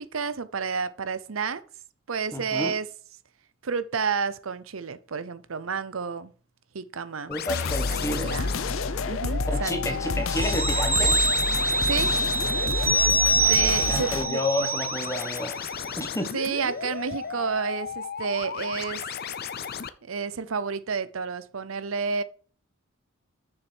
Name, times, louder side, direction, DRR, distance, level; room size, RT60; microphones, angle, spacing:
voice 1, 0.0-1.6 2.1-2.9 3.6-6.3 6.7-7.3 7.9-8.5 9.1-10.3 11.8-12.1 13.4-14.4 16.3-19.0 20.0-22.2, right 5 dB, 80° right, 0.7 m, -30 dB
voice 2, 2.3-2.7 7.3-8.4 9.5-11.3 12.6-13.2 13.6-16.3, left 1 dB, 15° left, 1.3 m, -31 dB
sound 1, 7.3-19.9, left 6 dB, 50° left, 0.6 m, -35 dB
sound 2, 7.5-14.3, left 3 dB, 85° left, 0.8 m, -29 dB
sound 3, 10.4-15.5 15.8-15.9, right 2 dB, 10° right, 0.5 m, -25 dB
6.9 x 6.7 x 4.5 m
head